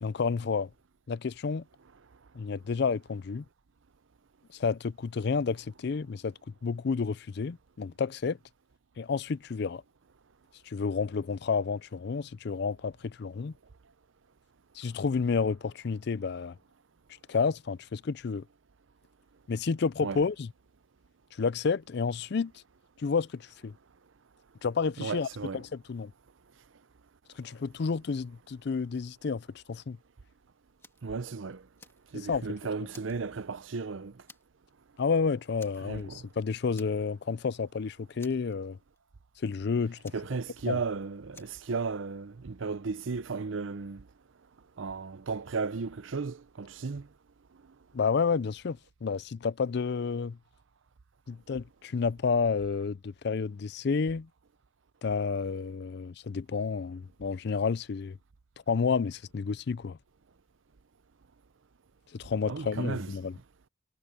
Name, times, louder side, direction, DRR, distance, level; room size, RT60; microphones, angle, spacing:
voice 1, 0.0-0.7 1.1-1.6 2.3-3.4 4.5-6.3 6.6-8.4 9.0-9.8 10.7-13.5 14.8-16.6 17.3-18.4 19.5-20.5 21.4-22.5 23.0-23.7 24.6-25.3 25.5-26.1 27.4-30.0 32.1-32.5 35.0-38.8 39.4-40.1 40.7-40.8 47.9-50.4 51.3-54.3 55.0-58.2 58.7-60.0 62.1-63.4, left 5 dB, 60° left, 0.4 m, -30 dB
voice 2, 25.0-25.6 31.0-31.6 32.1-34.1 35.8-36.2 40.1-44.0 44.8-47.1 62.5-63.1, right 4 dB, 85° right, 0.6 m, -35 dB
Fire, 30.8-31.1 31.5-32.5 32.9-33.8 34.3-34.7 35.0-35.1 35.6-36.3 36.7-37.3 37.6-37.7 38.2-39.0 40.0-40.9 41.3-41.7, left 3 dB, 15° left, 2.0 m, -55 dB
head